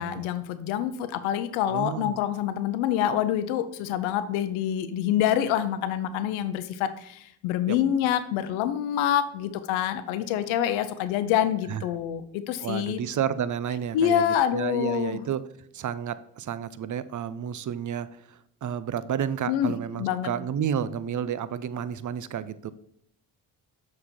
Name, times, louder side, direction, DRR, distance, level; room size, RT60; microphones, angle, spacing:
voice 1, 0.0-13.0 13.9-15.2 19.5-19.7 20.0-20.3, left 10 dB, 85° left, 12 dB, 0.6 m, -26 dB
voice 2, 1.7-2.2 7.7-7.8 11.7-11.8 12.6-15.4 15.7-22.7, right 8 dB, 40° right, 15 dB, 0.6 m, -31 dB
6.9 x 4.2 x 4.3 m, 0.71 s
hypercardioid pair, 45°, 47 cm